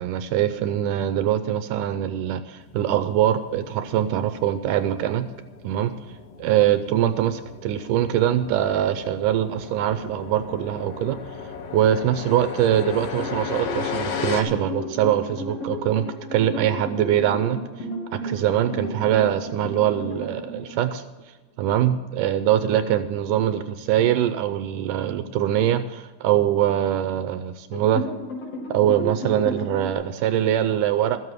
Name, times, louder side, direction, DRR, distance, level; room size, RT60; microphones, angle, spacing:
voice 1, 0.0-5.3 5.6-5.9 6.4-11.2 11.7-17.6 18.1-21.0 21.6-28.1 28.7-31.2, right 11 dB, 80° right, 10 dB, 2.0 m, -23 dB
sound 1, 2.6-14.4, left 6 dB, 65° left, 1.7 m, -36 dB
sound 2, 13.1-21.1 27.7-29.9, left 1 dB, 45° left, 3.7 m, -33 dB
14.0 x 7.6 x 8.1 m, 1.2 s
omnidirectional pair, 4.0 m